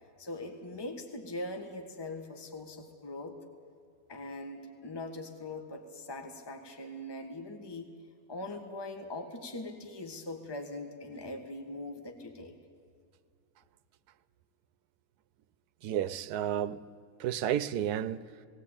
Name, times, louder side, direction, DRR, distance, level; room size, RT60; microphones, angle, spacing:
voice 1, 0.2-3.4 4.1-7.9 8.3-12.5, left 2 dB, 15° left, 1.4 m, -41 dB
voice 2, 15.8-16.8 17.2-18.2, right 10 dB, 85° right, 1.2 m, -31 dB
18.5 x 17.0 x 8.8 m
omnidirectional pair, 1.6 m